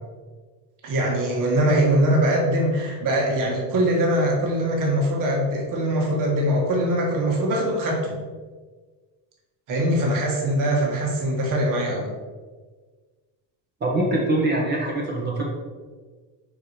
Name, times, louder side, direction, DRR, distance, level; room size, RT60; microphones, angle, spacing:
voice 1, 0.8-8.2 9.7-12.1, right 1 dB, 45° right, -1 dB, 1.6 m, -22 dB
voice 2, 13.8-15.4, right 1 dB, 25° right, -3 dB, 1.0 m, -23 dB
5.6 x 5.1 x 4.3 m, 1.4 s
cardioid pair, 170°, 44 cm